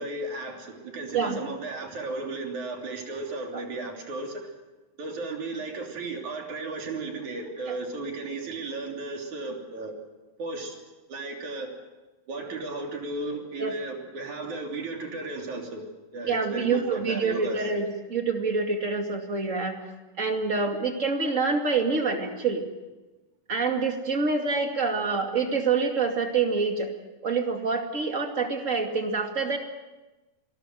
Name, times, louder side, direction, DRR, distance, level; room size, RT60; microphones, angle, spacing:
voice 1, 0.0-4.5 5.0-9.9 10.4-10.8 11.1-11.7 12.3-15.9 16.1-17.7, right 2 dB, 60° right, 2 dB, 4.5 m, -35 dB
voice 2, 16.3-19.8 20.2-22.6 23.5-26.9 27.2-29.6, right 4 dB, 25° right, 4 dB, 2.3 m, -26 dB
26.0 x 19.5 x 7.8 m, 1.1 s
omnidirectional pair, 3.9 m